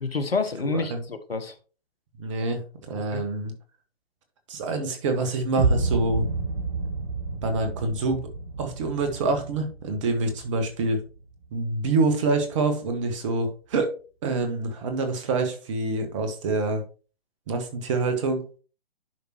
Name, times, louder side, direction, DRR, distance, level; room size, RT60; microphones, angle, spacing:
voice 1, 0.0-1.5 3.1-3.2, left 4 dB, 75° left, 10 dB, 1.3 m, -28 dB
voice 2, 2.2-3.5 4.5-6.3 7.4-8.3 8.6-11.0 11.5-13.9 14.2-16.8 17.5-18.4, right 3 dB, 30° right, 6 dB, 1.6 m, -26 dB
sound 1, 5.6-11.6, right 3 dB, 60° right, 2.5 m, -30 dB
10.5 x 5.2 x 3.1 m, 0.37 s
figure-of-eight pair, 135°, 30 cm